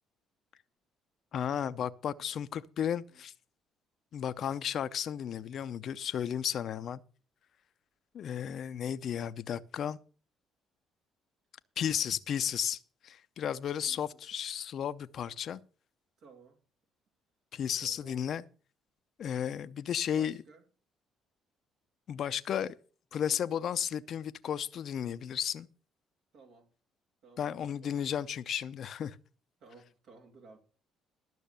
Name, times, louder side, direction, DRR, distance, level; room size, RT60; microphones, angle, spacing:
voice 1, 1.3-3.3 4.1-7.0 8.1-10.0 11.8-15.6 17.5-18.4 19.2-20.4 22.1-22.8 23.1-25.7 27.4-29.2, left 9 dB, 60° left, 0.6 m, -34 dB
voice 2, 16.2-16.6 17.8-18.3 19.3-19.6 20.1-20.7 26.3-26.7 27.2-28.2 29.6-30.6, right 4 dB, 70° right, 2.6 m, -57 dB
12.0 x 6.4 x 6.9 m
supercardioid pair, 60°, 0 cm